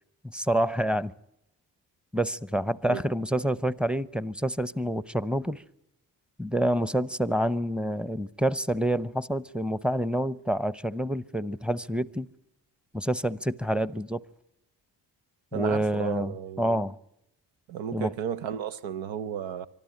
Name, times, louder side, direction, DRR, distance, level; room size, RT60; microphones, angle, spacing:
voice 1, 0.2-1.1 2.1-5.6 6.4-12.3 12.9-14.2 15.5-17.0 17.9-18.1, right 1 dB, ahead, 0.8 m, -28 dB
voice 2, 15.5-16.8 17.7-19.7, right 8 dB, 85° right, 0.8 m, -33 dB
24.5 x 13.0 x 9.9 m
supercardioid pair, 45°, 45 cm